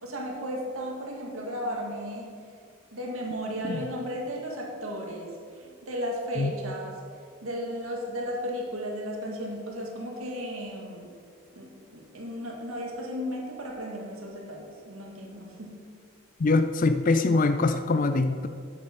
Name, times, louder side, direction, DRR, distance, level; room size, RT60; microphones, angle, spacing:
voice 1, 0.0-2.3 2.9-7.0 7.4-11.1 11.6-15.7 16.4-16.5, equal, 80° right, 0 dB, 2.1 m, -35 dB
voice 2, 16.4-18.5, left 3 dB, 40° left, 9 dB, 0.4 m, -23 dB
8.6 x 8.4 x 6.0 m, 2.1 s
head